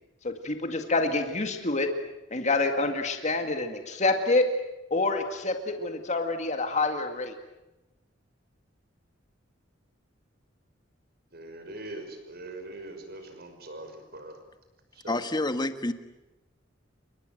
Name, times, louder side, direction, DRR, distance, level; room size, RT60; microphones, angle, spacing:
voice 1, 0.2-1.9 2.3-4.5 4.9-7.3, left 3 dB, 40° left, 5 dB, 2.2 m, -27 dB
voice 2, 11.3-14.4 14.9-15.2, right 1 dB, 55° right, 6 dB, 6.0 m, -42 dB
voice 3, 15.1-15.9, left 2 dB, 25° left, 9 dB, 1.6 m, -28 dB
28.5 x 24.0 x 7.8 m, 1.0 s
head